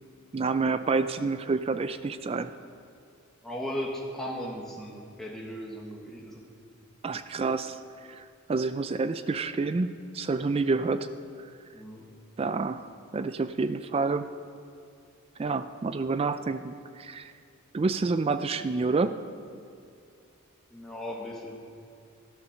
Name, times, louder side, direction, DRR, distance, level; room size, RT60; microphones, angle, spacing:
voice 1, 0.3-2.5 7.0-7.8 8.1-11.1 12.4-14.3 15.4-17.3 17.7-19.2, right 4 dB, 25° right, 11 dB, 0.3 m, -28 dB
voice 2, 3.4-6.4 11.7-12.1 20.7-21.6, equal, ahead, -3 dB, 1.3 m, -37 dB
12.5 x 12.0 x 6.4 m, 2.5 s
head